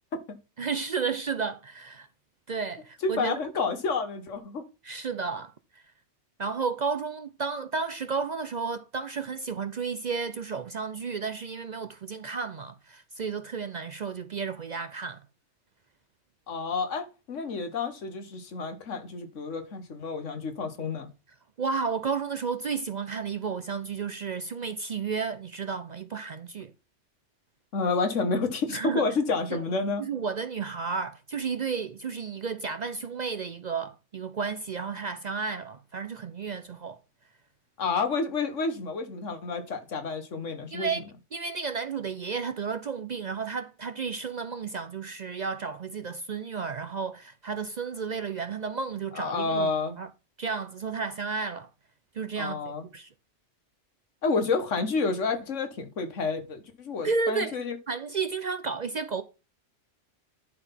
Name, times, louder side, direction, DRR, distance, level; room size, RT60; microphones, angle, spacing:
voice 1, 0.6-2.1 2.5-3.4 4.8-5.8 6.4-15.2 21.6-26.7 28.7-29.0 29.5-29.6 30.0-37.0 40.7-41.0 41.3-49.7 50.0-50.1 50.4-51.7 52.1-53.1 57.0-57.6 57.9-59.2, right 5 dB, 50° right, 0.5 m, -32 dB
voice 2, 3.0-4.6 16.5-21.1 27.7-30.0 37.8-40.9 49.1-50.0 52.4-52.8 54.2-57.8, left 4 dB, 85° left, 1.6 m, -29 dB
11.0 x 4.0 x 5.6 m
omnidirectional pair, 1.2 m